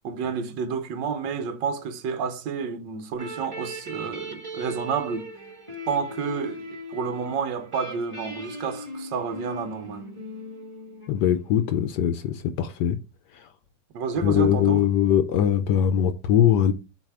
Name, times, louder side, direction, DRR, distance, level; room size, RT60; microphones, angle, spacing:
voice 1, 0.0-5.3 5.9-10.1 13.9-14.9, right 6 dB, 80° right, 1.5 m, -30 dB
sound 1, 3.1-11.6, equal, 15° right, 1.6 m, -39 dB
voice 2, 11.1-13.0 14.2-16.7, left 10 dB, 75° left, 1.2 m, -21 dB
7.4 x 2.7 x 4.8 m
omnidirectional pair, 2.0 m